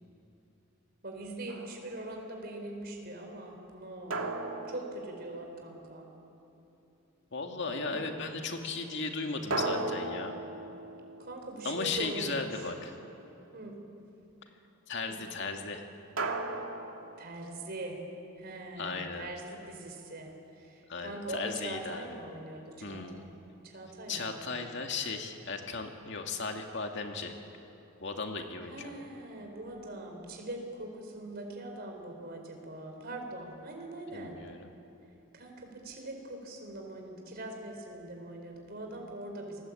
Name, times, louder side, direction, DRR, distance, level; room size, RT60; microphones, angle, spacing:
voice 1, 1.0-4.2 4.6-6.1 7.6-8.1 11.2-12.7 13.5-13.8 15.0-15.2 17.2-18.0 18.4-23.3 23.6-24.7 28.6-34.4 35.3-39.6, right 2 dB, 50° right, 2 dB, 4.5 m, -42 dB
sound 1, 1.5-2.1 4.1-5.9 9.5-12.1 16.2-17.8, right 2 dB, 75° right, 2.2 m, -37 dB
voice 2, 7.3-10.4 11.6-12.9 14.9-15.8 18.8-19.3 20.9-22.2 22.8-23.2 24.1-27.3 28.0-28.9 34.1-34.6, left 4 dB, 55° left, 3 dB, 2.4 m, -36 dB
29.5 x 20.0 x 8.7 m, 2.9 s
head